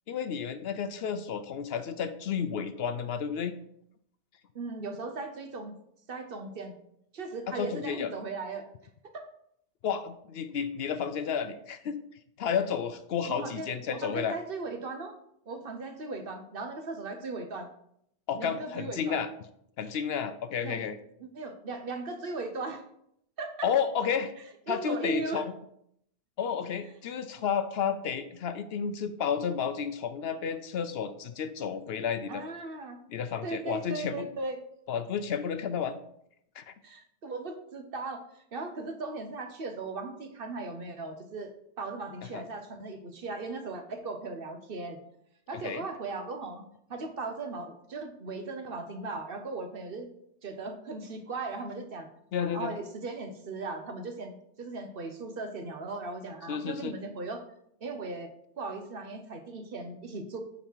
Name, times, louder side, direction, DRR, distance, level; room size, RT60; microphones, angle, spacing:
voice 1, 0.1-3.6 7.5-8.1 9.8-12.0 12.4-14.4 18.3-19.3 19.8-21.0 23.6-24.3 24.7-25.5 26.4-32.4 33.1-34.3 34.9-36.0 36.6-36.7 42.3-42.4 45.6-45.8 52.3-52.8 56.5-56.9, left 7 dB, 65° left, 11 dB, 0.7 m, -31 dB
voice 2, 4.5-5.7 6.1-6.7 7.1-8.7 9.1-9.3 13.3-15.2 15.5-17.7 18.4-19.2 20.6-20.8 21.2-22.8 23.4-23.7 24.7-25.4 32.3-33.0 33.4-34.6 36.8-41.5 41.8-45.0 45.5-46.6 46.9-50.1 50.4-52.1 52.4-57.4 57.8-60.4, right 3 dB, 55° right, 6 dB, 1.1 m, -38 dB
8.7 x 4.1 x 4.6 m, 0.72 s
omnidirectional pair, 1.2 m